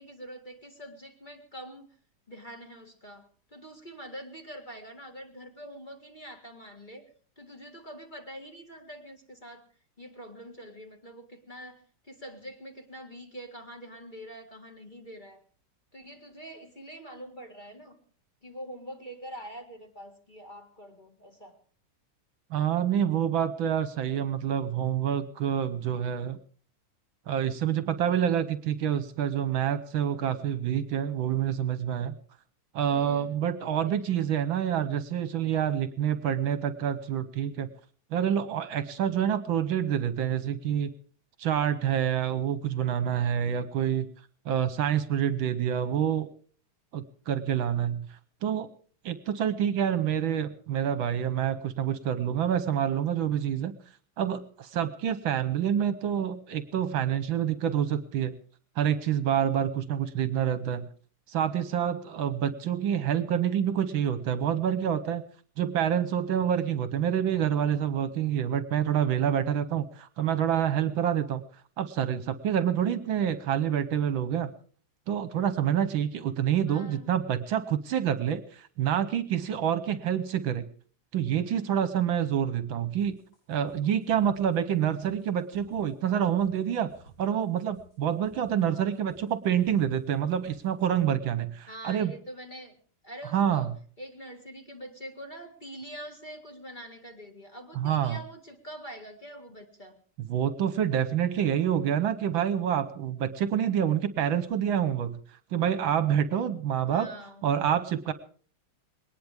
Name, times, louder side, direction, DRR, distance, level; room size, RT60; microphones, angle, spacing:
voice 1, 0.0-1.9 2.3-7.1 7.4-9.7 10.0-15.4 15.9-18.0 18.4-21.6 24.0-24.2 32.8-33.4 33.9-34.3 76.7-77.1 88.7-89.0 91.7-92.8 93.0-93.7 94.0-100.0 106.8-107.4, equal, 20° left, 4 dB, 1.9 m, -45 dB
voice 2, 22.5-26.4 27.3-32.1 32.7-37.7 38.1-40.9 41.4-44.1 44.5-46.3 46.9-48.1 48.4-48.7 49.0-53.7 54.2-58.3 58.8-60.9 61.3-65.2 65.6-71.4 71.8-74.5 75.1-80.6 81.1-83.2 83.5-86.9 87.2-92.1 93.3-93.7 97.8-98.2 100.3-105.2 105.5-107.1 107.4-108.1, right 9 dB, 70° right, 13 dB, 1.6 m, -27 dB
sound 1, 83.0-91.1, right 1 dB, 50° left, 6.2 m, -57 dB
21.0 x 19.0 x 3.5 m, 0.43 s
omnidirectional pair, 2.4 m